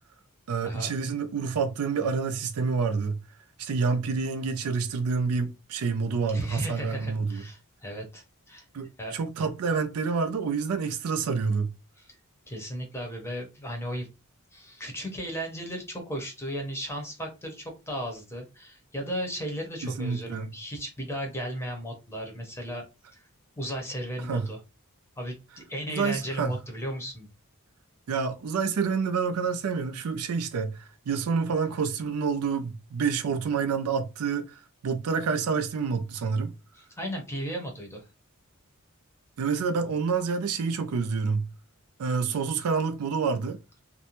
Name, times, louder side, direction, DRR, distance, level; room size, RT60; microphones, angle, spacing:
voice 1, 0.5-3.2 3.6-7.4 8.7-11.7 19.8-20.5 24.3-24.5 25.9-26.5 28.1-36.5 39.4-41.5 42.0-43.6, right 5 dB, 80° right, 0.4 m, -28 dB
voice 2, 6.3-8.7 9.0-9.2 12.0-12.1 12.5-14.1 14.5-22.8 23.1-23.2 23.6-24.6 25.2-27.3 36.7-38.0, equal, 10° left, 0.7 m, -35 dB
2.5 x 2.1 x 2.9 m
head